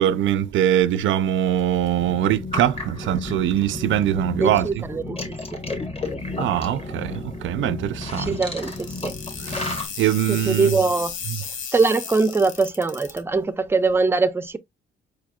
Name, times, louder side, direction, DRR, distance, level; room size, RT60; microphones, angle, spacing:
voice 1, 0.0-4.8 6.4-8.4 9.5-10.8, right 11 dB, 75° right, 0.5 m, -22 dB
sound 1, 2.0-9.9, left 2 dB, 30° left, 1.8 m, -32 dB
voice 2, 4.1-5.4 7.6-7.8 8.2-9.1 10.3-11.1 11.7-14.6, right 4 dB, 10° right, 0.5 m, -22 dB
sound 2, 8.6-13.2, left 7 dB, 80° left, 1.2 m, -34 dB
4.9 x 4.3 x 2.3 m
cardioid pair, 90°, 20 cm